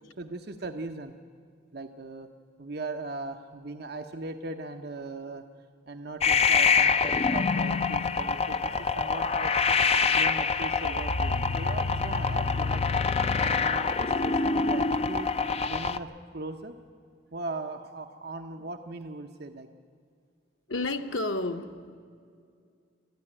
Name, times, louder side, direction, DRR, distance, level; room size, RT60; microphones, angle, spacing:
voice 1, 0.2-1.1 1.7-2.3 2.6-5.4 5.9-9.8 10.2-12.8 13.3-15.3 15.7-16.8 17.3-19.7, right 2 dB, 55° right, 5 dB, 0.8 m, -39 dB
sound 1, 6.2-16.0, left 4 dB, 30° left, 0.5 m, -25 dB
voice 2, 20.7-22.0, left 2 dB, 85° left, 6 dB, 1.1 m, -31 dB
20.0 x 13.5 x 9.8 m, 2.3 s
head